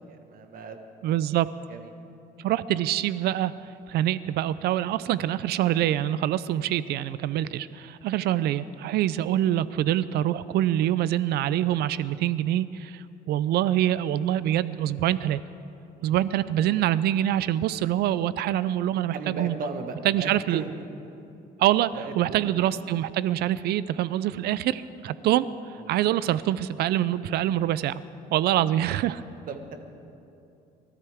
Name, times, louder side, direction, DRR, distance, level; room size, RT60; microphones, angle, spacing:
voice 1, 0.1-1.3 1.7-1.8 19.1-20.7 21.9-22.5 29.5-29.7, right 4 dB, 55° right, 6 dB, 1.5 m, -36 dB
voice 2, 1.0-1.5 2.4-3.5 3.9-15.4 16.0-19.6 20.0-20.7 21.6-25.5 25.7-28.0 28.3-29.2, right 12 dB, 70° right, 16 dB, 0.5 m, -25 dB
24.5 x 13.5 x 3.6 m, 2.8 s
cardioid pair, 110°, 17 cm